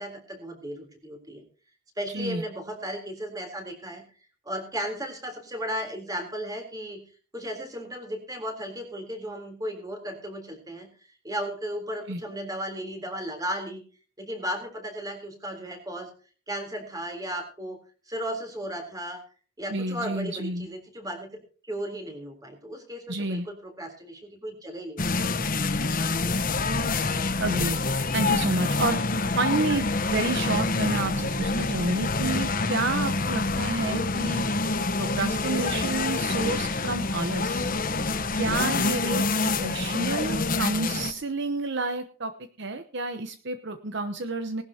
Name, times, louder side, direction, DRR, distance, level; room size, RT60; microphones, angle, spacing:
voice 1, 0.0-1.4 2.0-4.0 4.5-7.0 7.3-10.9 11.2-13.8 14.2-16.1 16.5-17.8 18.1-19.2 19.6-21.3 21.6-25.5, equal, 15° right, 4 dB, 3.6 m, -35 dB
voice 2, 19.7-20.7 23.1-23.5 27.4-27.8 28.1-29.0 29.4-34.5 35.0-37.7 38.3-42.3 42.6-44.6, right 2 dB, 55° right, 8 dB, 0.9 m, -29 dB
sound 1, 25.0-41.1, left 3 dB, 40° left, 1.0 m, -27 dB
19.0 x 12.0 x 2.9 m, 0.38 s
head